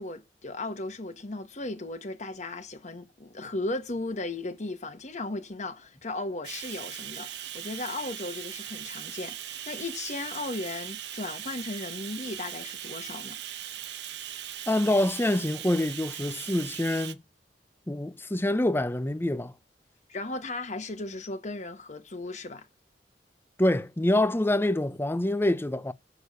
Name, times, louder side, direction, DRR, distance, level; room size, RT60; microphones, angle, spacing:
voice 1, 0.0-13.4 20.1-22.6, left 2 dB, 45° left, 1.5 m, -36 dB
Bathtub (filling or washing), 6.4-17.1, right 11 dB, 70° right, 0.9 m, -39 dB
voice 2, 14.7-17.2 17.9-19.5 23.6-25.9, left 1 dB, 15° left, 0.6 m, -26 dB
6.9 x 6.4 x 6.8 m
head